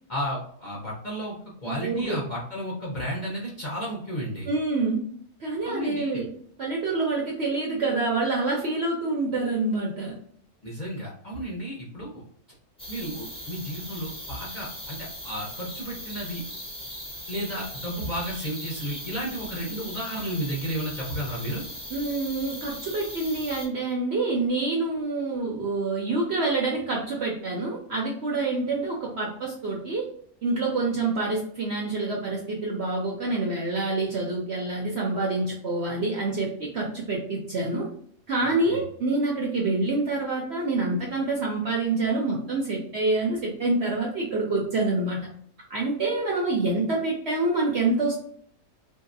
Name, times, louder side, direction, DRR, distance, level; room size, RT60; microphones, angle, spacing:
voice 1, 0.1-1.4 1.6-4.5 5.6-6.2 10.6-12.2 12.9-16.4 17.3-21.6 38.6-38.8, equal, 40° left, -5 dB, 0.7 m, -33 dB
voice 2, 1.7-2.2 4.5-5.0 5.4-6.3 6.6-10.2 21.9-30.1 30.4-37.9 38.3-45.3 45.7-48.2, right 3 dB, 60° right, -1 dB, 0.7 m, -27 dB
sound 1, 12.8-23.7, equal, 5° left, 0.5 m, -39 dB
3.3 x 2.8 x 2.5 m, 0.63 s
omnidirectional pair, 1.6 m